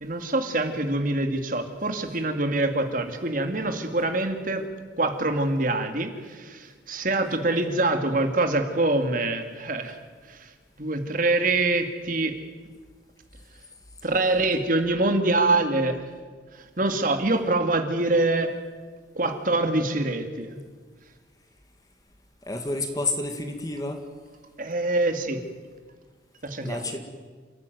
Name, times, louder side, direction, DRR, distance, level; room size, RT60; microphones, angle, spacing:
voice 1, 0.0-4.7 5.0-10.0 10.3-10.5 10.8-12.4 14.0-16.0 16.5-18.5 19.2-20.5 24.6-25.4 26.4-26.9, right 2 dB, 50° right, 6 dB, 2.3 m, -25 dB
voice 2, 22.5-24.0 26.6-27.0, left 2 dB, 20° left, 6 dB, 1.9 m, -29 dB
28.5 x 14.0 x 9.4 m, 1.5 s
head